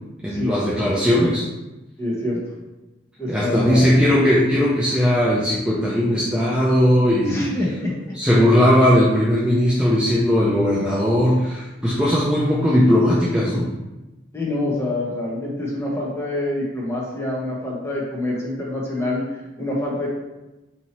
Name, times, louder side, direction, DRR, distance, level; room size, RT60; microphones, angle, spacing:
voice 1, 0.2-1.4 3.3-7.5 8.1-13.7, equal, 5° right, -7 dB, 0.4 m, -18 dB
voice 2, 2.0-2.4 3.2-3.9 7.3-7.9 14.3-20.1, left 1 dB, 10° left, -4 dB, 0.7 m, -26 dB
2.9 x 2.7 x 4.1 m, 1.0 s
head